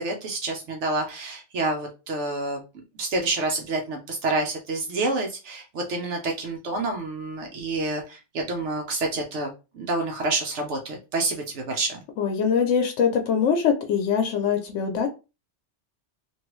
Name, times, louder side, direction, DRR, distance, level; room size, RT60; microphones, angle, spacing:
voice 1, 0.0-2.6 3.0-12.0, right 2 dB, 75° right, 1.0 m, -28 dB
voice 2, 12.2-15.1, left 7 dB, 85° left, 0.9 m, -23 dB
3.1 x 2.5 x 3.0 m
omnidirectional pair, 1.2 m